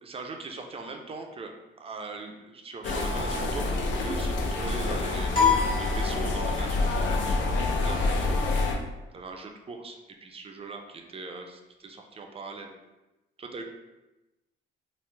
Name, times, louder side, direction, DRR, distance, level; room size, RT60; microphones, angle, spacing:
voice 1, 0.0-1.5 1.8-5.4 5.8-8.4 9.1-12.7 13.4-13.6, right 3 dB, 30° right, 3 dB, 0.5 m, -40 dB
sound 1, 2.8-8.7, left 2 dB, 70° left, 0.5 m, -27 dB
sound 2, 5.3-6.8, left 6 dB, 25° left, 1.0 m, -26 dB
3.1 x 2.1 x 3.3 m, 1.0 s
cardioid pair, 90°, 20 cm